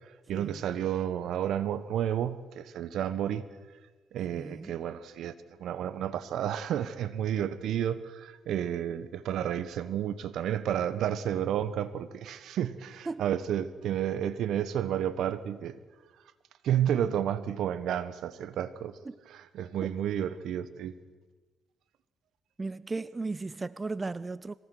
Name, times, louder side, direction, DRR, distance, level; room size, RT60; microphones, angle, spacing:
voice 1, 0.0-3.5 4.1-5.3 5.6-15.8 16.6-19.0 19.3-20.9, right 10 dB, 75° right, 1.2 m, -31 dB
voice 2, 4.3-4.7 13.1-13.2 19.1-19.2 19.8-19.9 22.6-24.5, right 3 dB, 25° right, 0.5 m, -36 dB
23.5 x 17.5 x 6.4 m
cardioid pair, 90°, 0 cm